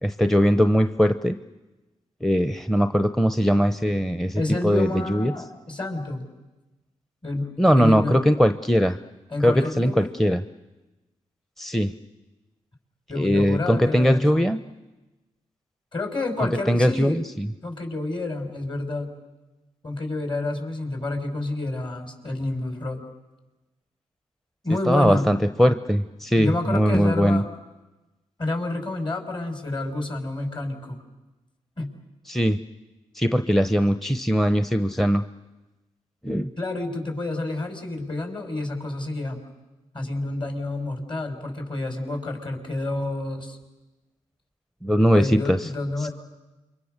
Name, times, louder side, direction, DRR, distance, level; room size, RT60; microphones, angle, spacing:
voice 1, 0.0-1.4 2.2-5.3 7.6-9.0 9.4-10.4 11.6-11.9 13.1-14.6 16.7-17.5 24.9-27.4 32.3-32.6 33.1-35.2 36.2-36.5 44.8-45.7 46.0-46.1, equal, ahead, 10 dB, 0.9 m, -20 dB
voice 2, 4.4-6.3 7.2-8.2 9.3-10.1 13.1-14.5 15.9-17.2 17.6-19.1 19.8-23.0 24.6-25.4 26.4-27.5 28.4-31.0 31.8-31.9 36.6-39.4 39.9-43.6 45.1-46.1, left 2 dB, 40° left, 4 dB, 5.8 m, -29 dB
28.5 x 24.0 x 6.8 m, 1.1 s
supercardioid pair, 50°, 13 cm